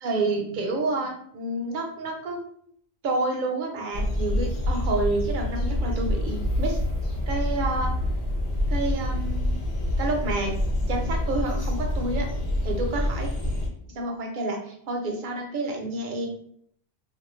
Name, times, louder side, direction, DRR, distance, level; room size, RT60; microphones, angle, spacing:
voice 1, 0.0-2.4 3.0-6.8 7.3-7.9 8.7-9.6 10.0-10.5 10.9-12.3 12.6-13.3 13.9-16.3, right 2 dB, 55° right, 2 dB, 0.7 m, -29 dB
sound 1, 3.9-13.7, left 1 dB, 70° left, 1.1 m, -27 dB
2.5 x 2.1 x 3.0 m, 0.66 s
omnidirectional pair, 1.1 m